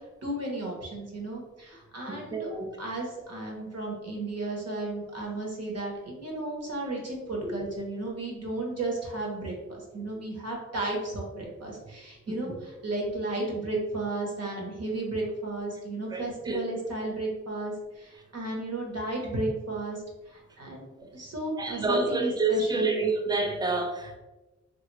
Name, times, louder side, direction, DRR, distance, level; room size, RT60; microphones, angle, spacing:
voice 1, 0.2-2.5 2.8-20.0 20.3-20.8 21.1-23.0, right 2 dB, 55° right, -1 dB, 1.1 m, -34 dB
voice 2, 2.1-2.7 7.4-7.5 12.3-12.6 16.1-16.6 21.6-24.2, right 3 dB, 15° right, 2 dB, 0.5 m, -28 dB
3.3 x 2.4 x 3.1 m, 1.1 s
wide cardioid pair, 95°, 31 cm